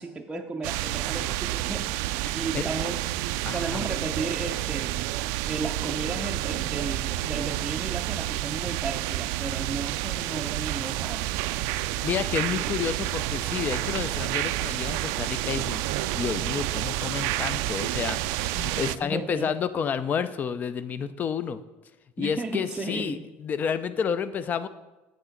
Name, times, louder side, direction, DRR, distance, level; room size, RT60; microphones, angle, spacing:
voice 1, 0.0-1.9 2.3-3.1 3.5-5.0 5.5-11.4 19.0-19.6 22.2-23.2, right 3 dB, 15° right, 1 dB, 0.5 m, -34 dB
sound 1, 0.6-19.0, right 15 dB, 75° right, 0.3 m, -29 dB
voice 2, 3.5-3.8 11.8-21.6 22.2-24.7, left 7 dB, 35° left, 14 dB, 0.5 m, -30 dB
8.3 x 6.2 x 5.8 m, 1.1 s
cardioid pair, 125°, 5 cm